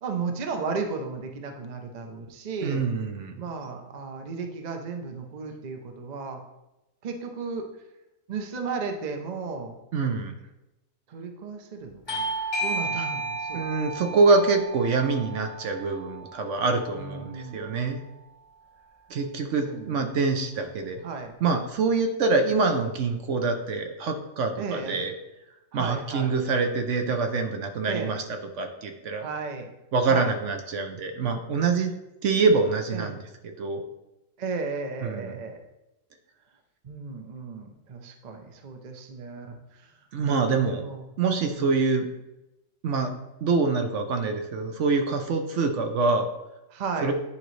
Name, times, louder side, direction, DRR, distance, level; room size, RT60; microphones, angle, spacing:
voice 1, 0.0-2.8 3.4-6.4 7.0-7.7 8.3-9.7 11.1-12.3 12.6-13.6 16.9-17.6 19.4-20.2 21.0-21.3 24.6-25.0 25.7-26.3 27.9-28.1 29.2-29.7 30.1-30.3 32.9-33.1 34.4-35.6 36.8-39.9 40.2-41.1 41.5-42.1 46.7-47.1, right 4 dB, 40° right, 4 dB, 0.6 m, -34 dB
voice 2, 2.6-3.3 9.9-10.3 13.5-18.0 19.1-21.0 21.4-25.1 25.7-28.2 28.6-29.3 29.9-31.9 32.2-33.2 33.4-33.8 35.0-35.4 40.1-40.9 41.2-42.0 42.8-43.1 43.4-46.3 47.0-47.1, right 4 dB, 65° right, 5 dB, 1.0 m, -25 dB
Bell / Doorbell, 12.1-17.3, right 2 dB, 20° left, 1.0 m, -33 dB
9.9 x 3.9 x 3.1 m, 0.95 s
omnidirectional pair, 1.4 m